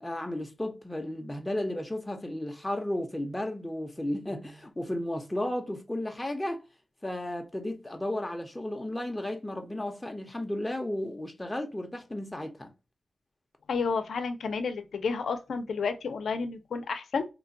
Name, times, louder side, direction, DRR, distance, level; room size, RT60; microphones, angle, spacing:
voice 1, 0.0-6.6 7.0-12.7, left 1 dB, 10° left, 0.5 m, -34 dB
voice 2, 13.7-17.3, left 5 dB, 80° left, 0.5 m, -31 dB
3.1 x 2.2 x 2.5 m
wide cardioid pair, 110°, 0 cm